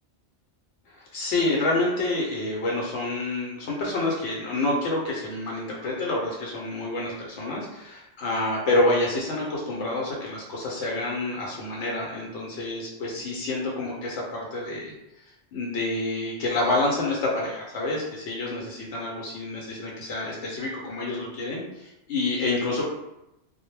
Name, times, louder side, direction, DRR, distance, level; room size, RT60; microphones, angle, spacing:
voice 1, 0.9-14.9 15.5-22.9, left 2 dB, 80° left, -3 dB, 0.9 m, -28 dB
2.1 x 2.0 x 3.1 m, 0.91 s
omnidirectional pair, 1.2 m